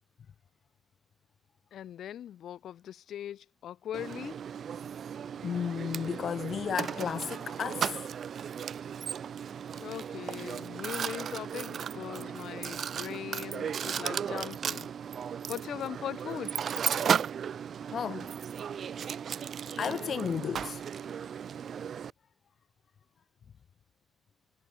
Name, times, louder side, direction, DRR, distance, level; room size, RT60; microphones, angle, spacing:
voice 1, 1.7-4.4 9.7-14.9 15.5-16.6, left 10 dB, 60° left, 4.4 m, -40 dB
Mechanisms, 3.9-22.1, right 8 dB, 45° right, 0.8 m, -35 dB
voice 2, 5.4-8.1 17.9-18.3 19.8-20.8, left 7 dB, 40° left, 1.7 m, -33 dB
cardioid pair, 170°, 0 cm